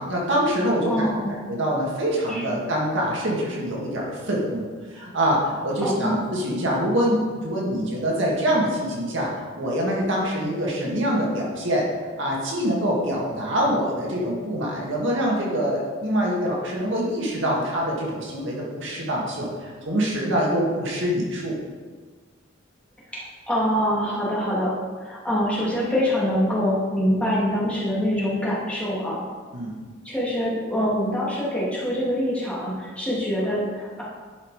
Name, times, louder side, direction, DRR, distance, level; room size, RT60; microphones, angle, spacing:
voice 1, 0.0-1.1 1.5-4.7 4.9-11.9 12.2-21.6 29.5-29.8, equal, 60° right, -3 dB, 2.0 m, -25 dB
voice 2, 0.8-1.4 2.3-2.5 5.8-6.2 23.1-29.2 30.0-34.0, equal, 5° left, -7 dB, 2.4 m, -25 dB
11.0 x 5.5 x 4.8 m, 1.5 s
head